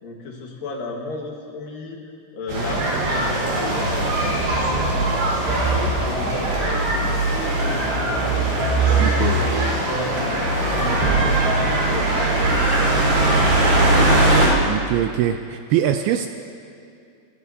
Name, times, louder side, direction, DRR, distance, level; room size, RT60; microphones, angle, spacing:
voice 1, 0.0-2.0 2.3-4.9 5.3-9.5 9.8-13.4, left 2 dB, 65° left, 0 dB, 2.9 m, -34 dB
sound 1, 2.5-14.5, right 2 dB, 60° right, 6.2 m, -20 dB
voice 2, 9.0-9.4 14.6-16.3, right 11 dB, 80° right, 7 dB, 2.3 m, -22 dB
27.0 x 18.0 x 2.8 m, 2.4 s
omnidirectional pair, 4.8 m